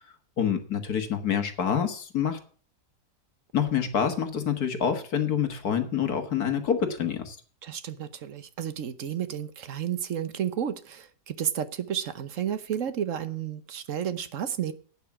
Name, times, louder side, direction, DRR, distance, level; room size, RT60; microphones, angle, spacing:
voice 1, 0.4-2.4 3.5-7.4, left 8 dB, 65° left, 2.0 m, -27 dB
voice 2, 7.6-14.7, right 9 dB, 55° right, 1.2 m, -32 dB
11.5 x 8.9 x 6.0 m
omnidirectional pair, 1.8 m